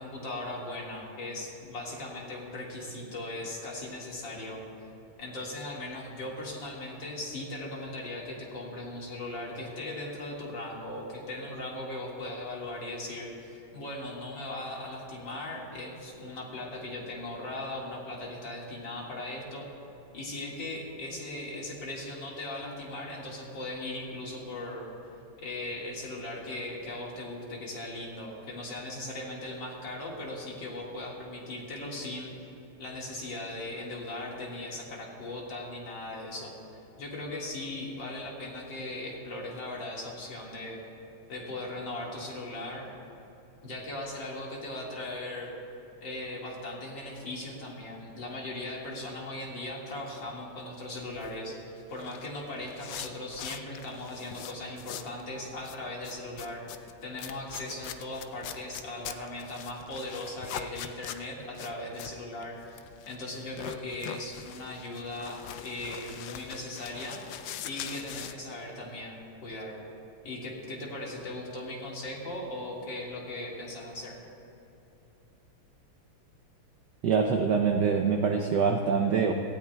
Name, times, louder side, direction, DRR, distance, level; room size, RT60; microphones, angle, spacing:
voice 1, 0.0-4.6 5.2-19.7 20.1-24.8 25.4-32.3 32.8-36.5 37.0-40.8 41.3-42.9 43.6-45.5 46.0-56.6 57.0-67.2 67.6-69.7 70.2-74.2, left 1 dB, 60° left, -3 dB, 2.5 m, -38 dB
sound 1, 51.0-55.2 55.5-68.3, left 10 dB, 80° left, 0.9 m, -43 dB
voice 2, 77.0-79.3, right 6 dB, 70° right, 3 dB, 1.1 m, -25 dB
18.0 x 16.0 x 2.3 m, 2.9 s
omnidirectional pair, 2.4 m